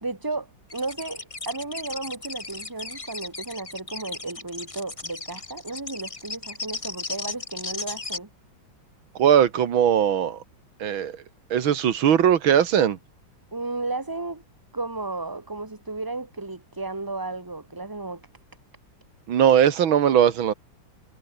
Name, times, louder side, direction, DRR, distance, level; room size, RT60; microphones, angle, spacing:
voice 1, 0.0-8.3 13.5-14.4 14.7-18.3, right 3 dB, 10° right, 2.5 m, -33 dB
sound 1, 0.7-8.2, left 3 dB, 20° left, 1.3 m, -36 dB
voice 2, 9.2-10.4 10.8-11.2 11.5-13.0 19.3-20.5, right 9 dB, 90° right, 2.2 m, -19 dB
omnidirectional pair, 2.2 m